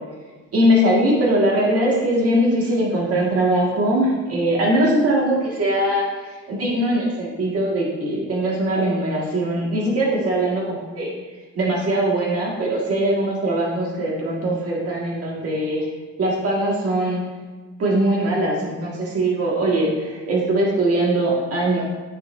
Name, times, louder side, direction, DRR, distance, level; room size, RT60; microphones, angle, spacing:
voice 1, 0.5-6.1 6.5-11.1 11.5-15.9 16.2-17.3 17.8-21.8, right 1 dB, 45° right, -3 dB, 1.6 m, -21 dB
12.0 x 4.5 x 2.5 m, 1.3 s
cardioid pair, 170°, 32 cm